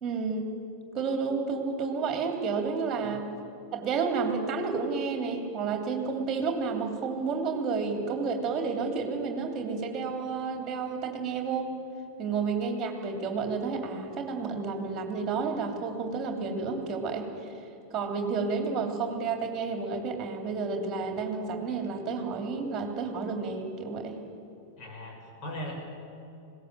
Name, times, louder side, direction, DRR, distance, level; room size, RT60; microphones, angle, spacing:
voice 1, 0.0-0.5 0.9-3.3 3.7-11.7 12.2-17.5 17.9-24.2, right 4 dB, 25° right, 4 dB, 3.2 m, -31 dB
voice 2, 24.8-25.7, left 1 dB, 35° left, 0 dB, 6.0 m, -39 dB
21.0 x 17.5 x 7.7 m, 2.8 s
figure-of-eight pair, 90°, 0 cm